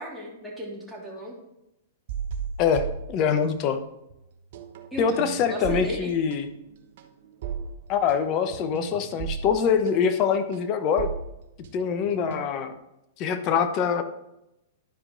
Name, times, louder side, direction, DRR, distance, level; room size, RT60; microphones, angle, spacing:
voice 1, 0.0-1.3 4.9-6.1, equal, ahead, -5 dB, 3.0 m, -36 dB
sound 1, 2.1-3.8 4.1-12.8, right 7 dB, 60° right, 1.0 m, -37 dB
voice 2, 2.6-3.8 5.0-6.5 7.9-11.1 11.7-12.7 13.2-14.0, left 7 dB, 40° left, 9 dB, 0.9 m, -24 dB
11.0 x 4.9 x 3.8 m, 0.88 s
hypercardioid pair, 120°, 0 cm